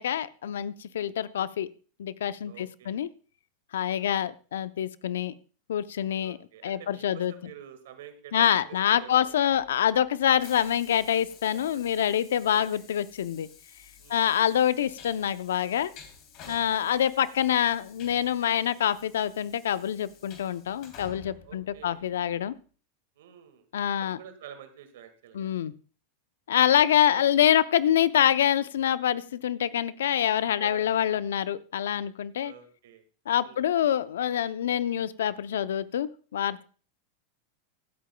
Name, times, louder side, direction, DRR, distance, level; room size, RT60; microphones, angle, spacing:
voice 1, 0.0-1.7 2.0-3.1 3.7-5.3 5.7-6.4 6.6-7.3 8.3-13.5 14.1-15.9 16.5-22.5 23.7-24.2 25.3-25.7 26.5-32.5 33.3-36.6, left 10 dB, 75° left, 15 dB, 0.6 m, -26 dB
voice 2, 2.4-3.0 3.9-4.2 6.2-9.3 11.5-11.8 12.5-12.8 14.0-14.3 16.4-16.8 18.6-18.8 21.4-22.1 23.2-23.7 24.0-25.5 27.1-27.2 30.6-31.0 32.4-33.0 33.4-33.6, right 9 dB, 70° right, 8 dB, 1.8 m, -49 dB
Train, 9.2-22.4, left 6 dB, 50° left, 3.2 m, -52 dB
24.5 x 8.6 x 2.3 m, 0.38 s
hypercardioid pair, 100°, 0 cm